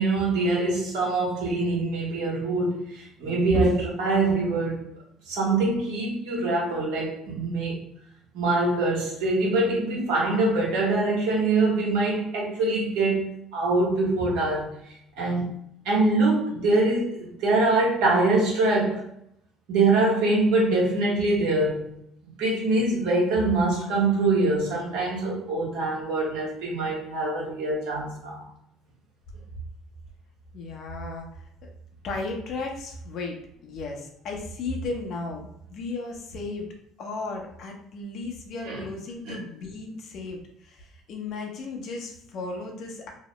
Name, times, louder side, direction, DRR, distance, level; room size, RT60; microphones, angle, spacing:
voice 1, 0.0-4.8 5.3-7.8 8.3-15.5 15.8-19.1 19.7-21.9 22.4-28.4 38.6-38.8 39.2-39.4, right 2 dB, 80° right, -3 dB, 1.1 m, -24 dB
voice 2, 30.5-31.7 32.0-36.7 37.0-43.1, left 2 dB, 60° left, 1 dB, 0.8 m, -34 dB
2.9 x 2.0 x 3.0 m, 0.73 s
supercardioid pair, 85°, 0 cm